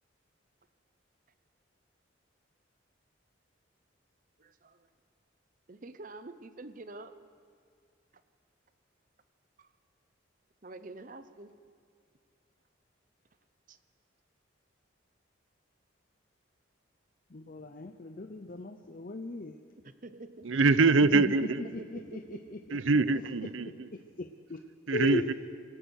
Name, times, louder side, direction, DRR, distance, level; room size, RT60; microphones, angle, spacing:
voice 1, 4.4-4.9 5.7-7.2 9.6-9.7 10.6-11.5 13.7-13.8 19.8-20.5 21.8-22.4, right 2 dB, 40° right, 12 dB, 0.8 m, -47 dB
voice 2, 17.3-19.6 21.1-23.0 23.7-24.6 24.9-25.3, left 2 dB, 45° left, 7 dB, 0.7 m, -38 dB
voice 3, 20.4-21.6 22.7-23.7 24.9-25.3, right 3 dB, 80° right, 16 dB, 0.7 m, -24 dB
25.5 x 17.5 x 6.4 m, 2.2 s
head